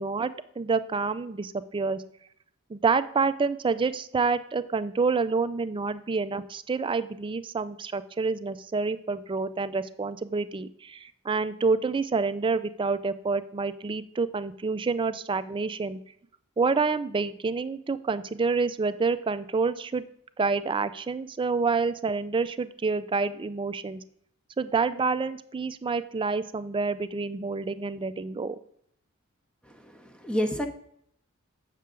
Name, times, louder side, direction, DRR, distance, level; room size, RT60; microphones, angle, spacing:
voice 1, 0.0-2.0 2.7-16.0 16.6-20.0 20.4-24.0 24.6-28.6, right 4 dB, 25° right, 13 dB, 0.4 m, -28 dB
voice 2, 29.7-30.7, equal, 5° left, 6 dB, 0.7 m, -29 dB
8.1 x 6.5 x 3.7 m, 0.69 s
head